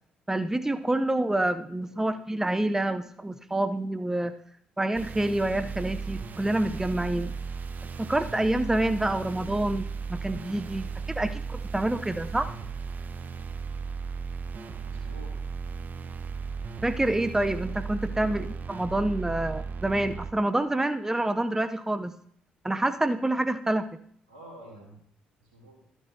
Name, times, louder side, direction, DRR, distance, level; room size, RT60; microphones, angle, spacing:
voice 1, 0.3-4.3 4.8-7.3 8.0-12.6 16.8-22.1 22.6-23.9, right 1 dB, 10° right, 11 dB, 0.6 m, -27 dB
sound 1, 4.9-20.3, right 5 dB, 45° right, 0.7 m, -36 dB
voice 2, 14.8-15.3 18.2-18.5 24.3-25.0 25.4-25.8, right 1 dB, 85° right, -1 dB, 3.0 m, -49 dB
12.5 x 9.7 x 2.7 m, 0.63 s
hypercardioid pair, 45°, 4 cm